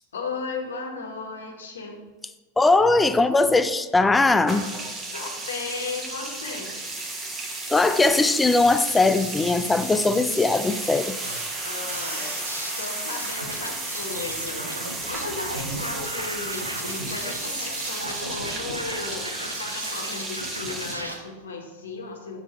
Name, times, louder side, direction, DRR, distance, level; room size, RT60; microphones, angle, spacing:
voice 1, 0.1-2.0 5.1-6.7 11.6-12.3 12.8-22.4, left 4 dB, 65° left, 1 dB, 1.4 m, -35 dB
voice 2, 2.6-4.7 7.7-11.2, left 3 dB, 10° left, 12 dB, 0.4 m, -20 dB
sound 1, 4.5-21.0, right 2 dB, 20° right, 1.1 m, -34 dB
sound 2, 11.2-21.1, right 1 dB, 85° right, 0.9 m, -35 dB
7.5 x 4.1 x 4.5 m, 1.2 s
figure-of-eight pair, 90°, 0 cm